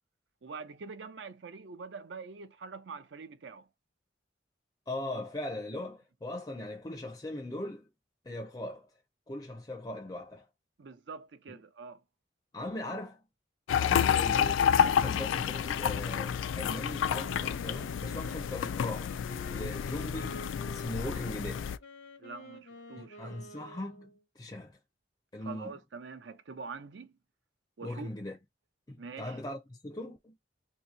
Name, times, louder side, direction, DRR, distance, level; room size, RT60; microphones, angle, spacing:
voice 1, 0.4-3.7 10.8-12.0 22.2-23.4 25.4-27.2 27.8-28.1 29.0-29.4, right 4 dB, 70° right, 0.5 m, -45 dB
voice 2, 4.9-7.8 8.2-8.9 9.3-10.4 11.5-11.6 12.5-13.2 13.8-19.1 19.5-21.7 23.0-24.8 25.3-25.7 27.8-28.4 28.9-30.3, left 1 dB, 20° left, 0.5 m, -40 dB
sound 1, 13.7-21.8, left 8 dB, 85° left, 0.3 m, -29 dB
sound 2, 13.9-18.9, right 1 dB, 50° right, 1.0 m, -55 dB
Wind instrument woodwind instrument, 17.1-24.2, equal, 65° left, 0.8 m, -49 dB
2.8 x 2.7 x 3.9 m
head